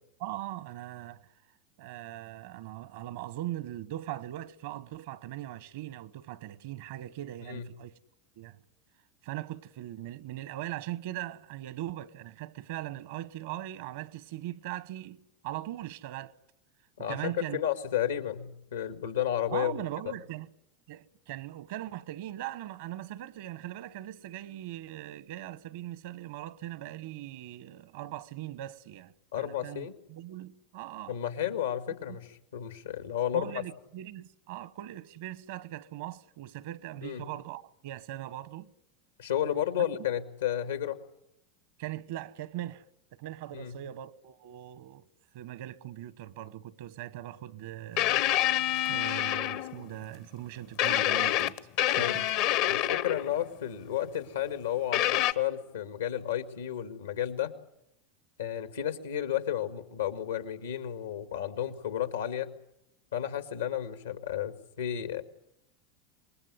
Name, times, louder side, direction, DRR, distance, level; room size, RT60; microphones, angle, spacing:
voice 1, 0.2-1.3 1.8-8.0 8.4-8.6 9.2-16.4 17.1-17.6 19.5-20.5 20.9-31.2 31.9-32.2 33.3-38.7 41.8-42.8 43.1-45.1 45.3-51.6 51.9-52.3, right 14 dB, 70° right, 1.1 m, -40 dB
voice 2, 17.0-19.8 29.3-29.9 31.1-32.3 32.5-33.5 37.0-37.3 39.2-41.0 43.5-43.7 51.9-52.2 52.7-57.5 58.4-62.5 63.1-65.2, left 11 dB, 85° left, 2.1 m, -32 dB
sound 1, 48.0-49.9 50.8-53.4 54.9-55.3, left 13 dB, 60° left, 1.0 m, -27 dB
26.0 x 20.5 x 9.8 m
hypercardioid pair, 90°, 0 cm